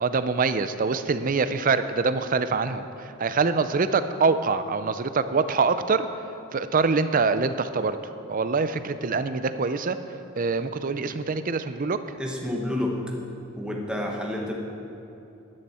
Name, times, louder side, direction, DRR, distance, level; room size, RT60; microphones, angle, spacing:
voice 1, 0.0-6.1 6.5-8.0 8.3-10.0 10.4-12.0, right 4 dB, 40° right, 11 dB, 0.5 m, -24 dB
voice 2, 12.2-13.0 13.6-14.5, left 1 dB, 5° right, -1 dB, 1.2 m, -29 dB
13.0 x 11.0 x 4.3 m, 2.8 s
head